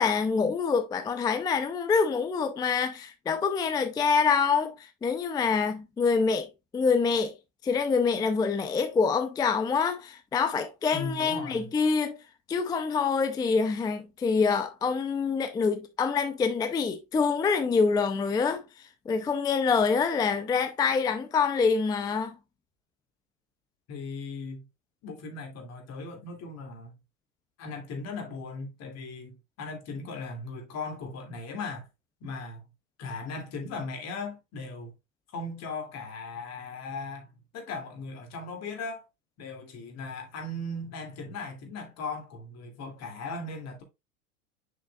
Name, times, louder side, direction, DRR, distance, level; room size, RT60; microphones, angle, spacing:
voice 1, 0.0-7.3 7.6-12.2 12.5-18.6 19.1-22.4, left 5 dB, 10° left, 0.4 m, -26 dB
voice 2, 10.9-11.7 23.9-24.6 25.0-27.0 27.6-31.9 32.2-32.6 33.0-34.9 35.3-37.3 37.5-39.1 39.4-43.8, left 3 dB, 40° left, 2.5 m, -38 dB
6.5 x 6.1 x 2.3 m
supercardioid pair, 130°, 41 cm